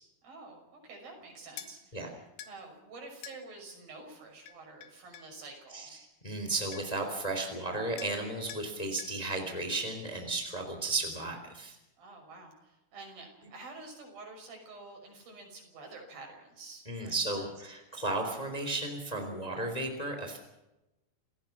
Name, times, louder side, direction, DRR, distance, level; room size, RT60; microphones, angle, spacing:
voice 1, 0.2-6.0 12.0-17.5, right 3 dB, 65° right, 2 dB, 7.8 m, -49 dB
sound 1, 1.6-1.7 2.4-2.6 3.2-3.4 4.5-5.3 6.4-6.5 6.7-7.1 8.0-8.2 8.5-8.7 9.0-9.2, left 9 dB, 90° left, 3.5 m, -46 dB
voice 2, 6.2-11.7 16.9-20.4, right 2 dB, 10° left, 4 dB, 3.2 m, -34 dB
29.0 x 16.0 x 6.0 m, 0.96 s
omnidirectional pair, 4.4 m